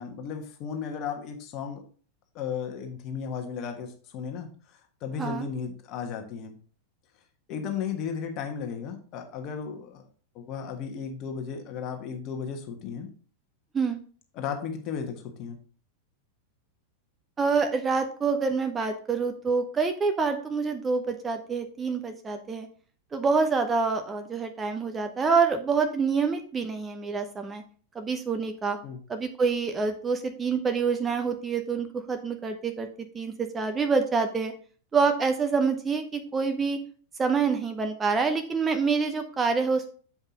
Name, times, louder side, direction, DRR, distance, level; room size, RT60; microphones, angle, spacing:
voice 1, 0.0-1.8 2.3-6.6 7.5-10.0 10.3-13.1 14.3-15.6 28.8-29.0, left 6 dB, 40° left, 5 dB, 1.4 m, -35 dB
voice 2, 17.4-22.7 23.1-27.6 27.9-28.8 29.1-32.9 33.1-34.5 34.9-36.8 37.2-39.9, right 5 dB, 20° right, 6 dB, 0.8 m, -26 dB
7.4 x 5.3 x 3.8 m, 0.43 s
figure-of-eight pair, 90°, 0 cm